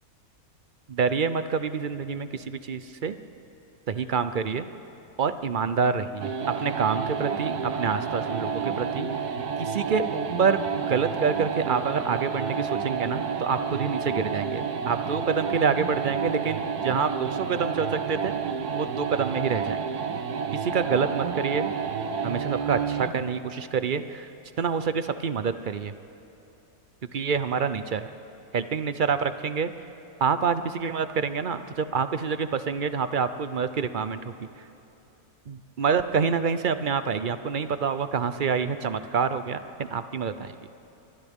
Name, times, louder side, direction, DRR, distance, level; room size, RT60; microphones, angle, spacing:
voice 1, 0.9-3.2 3.9-4.7 5.2-9.1 9.6-10.6 10.9-18.3 18.7-19.8 20.5-21.6 22.2-24.3 24.6-25.9 27.1-28.1 28.5-29.7 30.2-34.2 35.5-40.5, right 6 dB, 50° right, 11 dB, 0.6 m, -27 dB
sound 1, 6.2-23.2, right 6 dB, 85° right, 1.5 m, -30 dB
29.5 x 24.5 x 3.6 m, 3.0 s
omnidirectional pair, 1.6 m